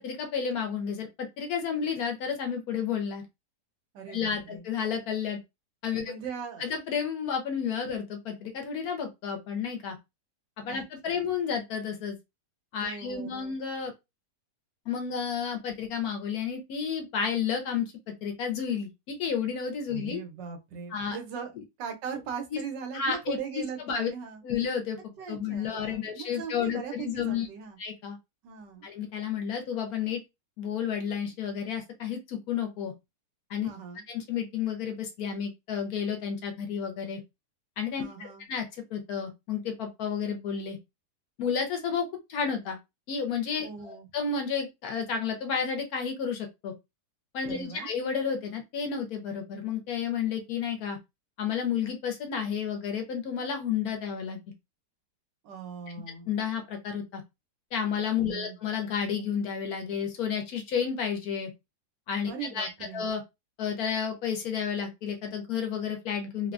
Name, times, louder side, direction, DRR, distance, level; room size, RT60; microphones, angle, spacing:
voice 1, 0.0-3.2 4.1-5.4 5.8-6.1 6.6-10.0 10.6-12.2 12.7-13.9 14.9-17.9 18.2-20.2 20.9-21.2 22.5-22.6 22.9-24.1 24.4-27.5 27.8-28.2 28.8-30.2 30.6-32.9 33.5-33.7 34.1-37.2 37.8-38.7 38.9-40.8 41.4-42.8 43.1-46.7 47.3-51.0 51.4-54.4 56.3-57.2 57.7-61.5 62.1-63.2 63.6-66.5, left 7 dB, 70° left, 1.0 m, -31 dB
voice 2, 3.9-4.6 6.0-6.7 10.6-11.2 12.8-13.6 19.9-21.5 21.8-24.4 25.2-27.8 28.4-28.9 33.6-34.0 38.0-38.5 43.6-44.1 47.5-47.9 55.4-56.3 58.2-58.6 62.2-63.1, right 6 dB, 90° right, 1.4 m, -40 dB
3.1 x 2.1 x 2.4 m
omnidirectional pair, 1.8 m